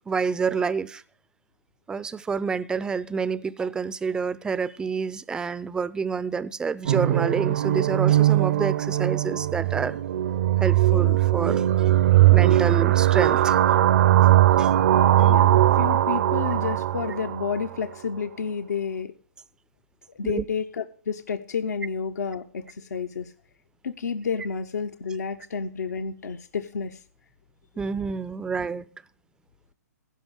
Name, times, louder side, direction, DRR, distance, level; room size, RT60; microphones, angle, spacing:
voice 1, 0.1-1.0 1.9-10.0 10.6-11.9 12.3-13.8 14.6-15.3 20.2-20.4 27.8-28.9, right 5 dB, 10° right, 0.4 m, -28 dB
sound 1, 6.9-17.7, right 13 dB, 55° right, 0.6 m, -20 dB
voice 2, 15.2-19.1 20.1-23.3 23.8-27.0, left 6 dB, 70° left, 0.8 m, -30 dB
16.0 x 5.3 x 6.3 m
hypercardioid pair, 130°, 9 cm